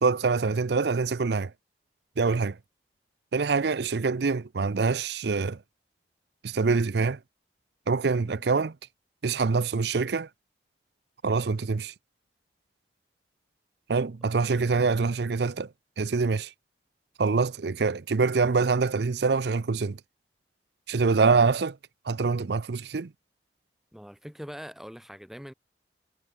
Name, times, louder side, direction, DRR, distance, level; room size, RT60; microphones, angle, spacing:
voice 1, 0.0-1.5 2.2-2.6 3.3-5.6 6.4-7.2 7.9-8.7 9.2-10.3 11.2-11.9 13.9-15.7 16.0-16.5 17.2-20.0 20.9-21.8 22.1-23.1, right 4 dB, 65° right, 0.5 m, -25 dB
voice 2, 23.9-25.5, equal, ahead, 1.7 m, -43 dB
head